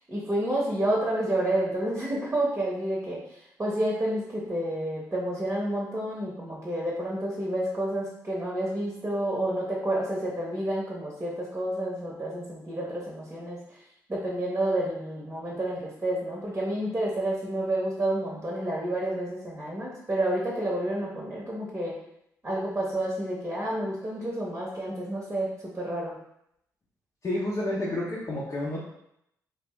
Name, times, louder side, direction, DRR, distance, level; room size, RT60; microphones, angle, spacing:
voice 1, 0.1-13.8 14.1-21.9 22.4-26.1, right 1 dB, 25° right, -4 dB, 0.9 m, -29 dB
voice 2, 27.2-28.8, left 1 dB, 45° left, -6 dB, 0.7 m, -30 dB
2.5 x 2.0 x 3.5 m, 0.77 s
hypercardioid pair, 45°, 8 cm